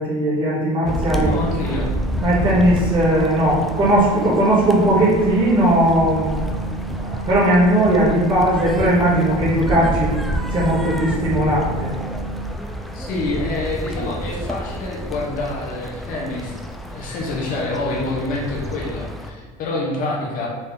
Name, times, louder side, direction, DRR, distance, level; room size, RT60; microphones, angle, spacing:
voice 1, 0.0-1.3 2.2-6.7 7.0-10.1 10.5-11.9, right 1 dB, 30° right, -7 dB, 1.4 m, -18 dB
sound 1, 0.8-19.3, equal, ahead, 0.3 m, -29 dB
voice 2, 1.2-1.9 12.9-16.5 16.9-20.5, left 2 dB, 55° left, -3 dB, 1.0 m, -27 dB
sound 2, 1.2-12.5, right 5 dB, 85° right, 0.6 m, -34 dB
4.2 x 3.2 x 3.7 m, 1.4 s
cardioid pair, 120°, 17 cm